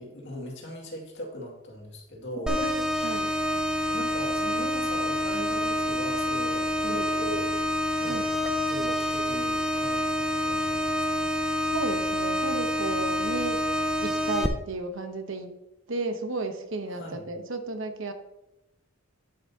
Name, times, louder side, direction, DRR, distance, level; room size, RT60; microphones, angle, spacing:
voice 1, 0.0-2.5 3.5-3.6 3.9-7.5 8.0-11.3 13.7-13.8 16.9-17.3, equal, 55° left, -1 dB, 2.2 m, -39 dB
voice 2, 2.4-3.3 8.0-8.2 11.6-13.6 14.0-15.5 15.9-18.1, right 3 dB, 60° right, 6 dB, 1.0 m, -33 dB
sound 1, 2.5-14.5, left 1 dB, 5° right, 0.4 m, -27 dB
10.5 x 8.1 x 2.8 m, 0.93 s
head